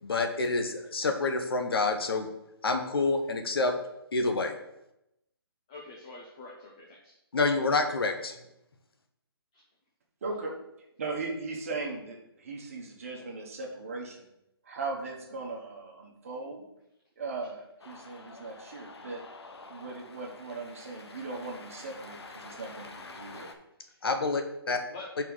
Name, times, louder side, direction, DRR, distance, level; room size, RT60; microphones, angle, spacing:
voice 1, 0.0-2.3 2.6-3.7 4.1-4.6 7.3-8.4 24.0-24.8 25.2-25.3, left 3 dB, 65° left, 5 dB, 1.2 m, -28 dB
voice 2, 5.7-7.1 9.5-9.6 23.9-24.0 24.9-25.2, left 3 dB, 10° left, -2 dB, 0.4 m, -46 dB
voice 3, 10.2-10.5 11.0-14.3 14.6-16.6 17.2-19.2 19.7-23.5, right 3 dB, 35° right, -1 dB, 1.3 m, -38 dB
Cheering, 17.8-23.5, left 3 dB, 85° left, 1.1 m, -48 dB
5.6 x 4.6 x 6.2 m, 0.85 s
hypercardioid pair, 175°, 13 cm